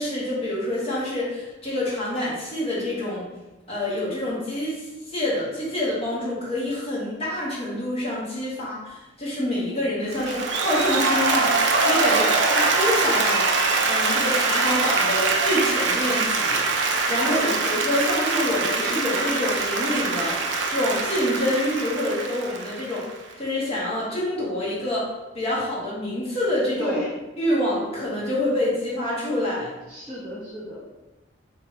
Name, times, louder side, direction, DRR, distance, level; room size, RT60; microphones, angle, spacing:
voice 1, 0.0-3.3 3.7-12.2 12.5-13.5 13.8-23.1 23.4-25.1 25.3-27.0 27.4-29.7, left 1 dB, 30° left, -7 dB, 1.3 m, -27 dB
Applause, 10.1-23.3, right 3 dB, 60° right, 0.5 m, -23 dB
voice 2, 17.1-17.6 26.8-27.1 29.9-30.9, equal, 5° left, -11 dB, 1.0 m, -32 dB
4.6 x 3.3 x 3.1 m, 1.1 s
head